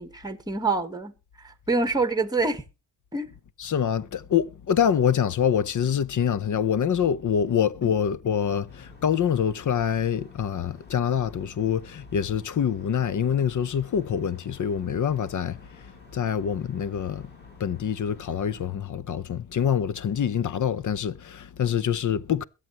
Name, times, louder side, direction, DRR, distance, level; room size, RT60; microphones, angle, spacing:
voice 1, 0.0-2.6 3.1-3.3 7.8-7.9, right 3 dB, 10° right, 1.3 m, -27 dB
voice 2, 3.6-17.3 17.6-22.4, left 8 dB, 45° left, 0.8 m, -25 dB
sound 1, 8.7-18.7, left 1 dB, 25° left, 7.8 m, -52 dB
22.0 x 8.0 x 3.0 m
cardioid pair, 115°, 41 cm